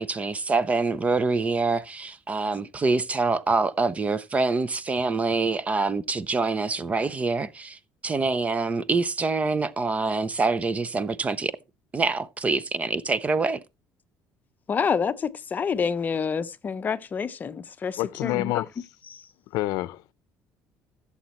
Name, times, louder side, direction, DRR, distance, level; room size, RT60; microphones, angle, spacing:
voice 1, 0.0-11.5 11.9-13.6, right 3 dB, 20° right, 0.5 m, -25 dB
voice 2, 14.7-18.5 19.1-19.2, left 6 dB, 25° left, 0.7 m, -28 dB
voice 3, 18.0-18.7 19.5-20.1, left 18 dB, 80° left, 0.6 m, -27 dB
15.5 x 7.1 x 3.0 m
cardioid pair, 140°, 6 cm